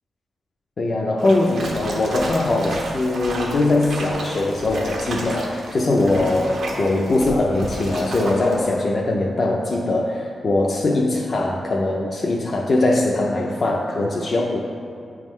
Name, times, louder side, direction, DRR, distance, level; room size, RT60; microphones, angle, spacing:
voice 1, 0.8-14.6, left 2 dB, 50° left, -1 dB, 0.4 m, -21 dB
sound 1, 1.2-8.7, right 2 dB, 85° right, 0.9 m, -32 dB
8.7 x 3.6 x 3.1 m, 2.5 s
wide cardioid pair, 105°, 0 cm